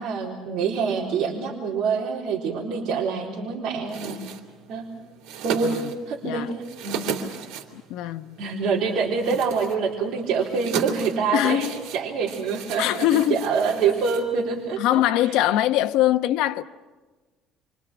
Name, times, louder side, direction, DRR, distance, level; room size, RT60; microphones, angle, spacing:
voice 1, 0.0-4.2 4.7-4.9 5.4-5.8 6.1-7.1 8.4-15.4, right 5 dB, 55° right, 4.0 m, -26 dB
sound 1, 3.8-14.8, right 7 dB, 85° right, 3.2 m, -36 dB
voice 2, 7.7-8.4 11.3-11.8 12.8-13.4 14.8-16.6, left 13 dB, 75° left, 1.1 m, -22 dB
28.0 x 25.0 x 6.2 m
cardioid pair, 160°, 0 cm